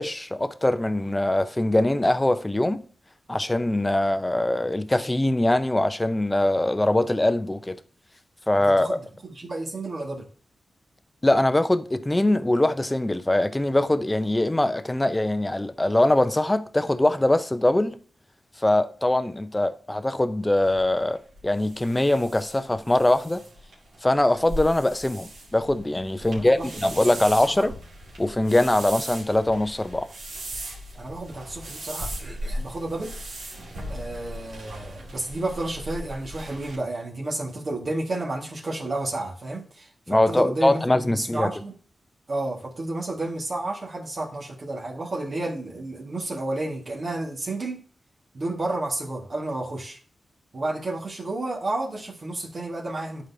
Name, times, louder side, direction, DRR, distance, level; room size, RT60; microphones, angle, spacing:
voice 1, 0.0-2.8 3.3-7.8 8.5-9.0 11.2-18.0 18.6-23.4 24.0-27.8 28.2-30.1 40.1-41.5, left 1 dB, 20° left, 0.6 m, -22 dB
voice 2, 9.2-10.3 26.2-26.7 27.4-27.7 30.9-33.2 33.9-41.7 42.3-47.8 48.3-50.0 50.5-53.3, right 2 dB, 55° right, 1.8 m, -31 dB
sound 1, 20.6-36.8, right 1 dB, 90° right, 2.3 m, -38 dB
11.0 x 4.1 x 2.8 m
cardioid pair, 60°, 0 cm